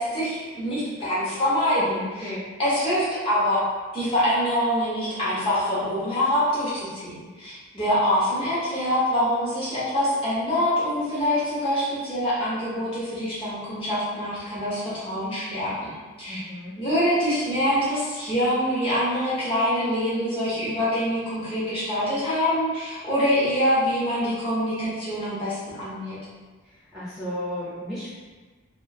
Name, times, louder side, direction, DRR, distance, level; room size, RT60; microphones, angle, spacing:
voice 1, 0.0-2.3 2.6-3.6 3.9-15.9 16.2-16.4 16.8-26.2, equal, 25° left, -9 dB, 0.8 m, -25 dB
voice 2, 1.9-2.4 16.3-16.7 26.6-28.1, left 1 dB, 5° right, -12 dB, 0.5 m, -34 dB
3.0 x 2.1 x 2.3 m, 1.3 s
head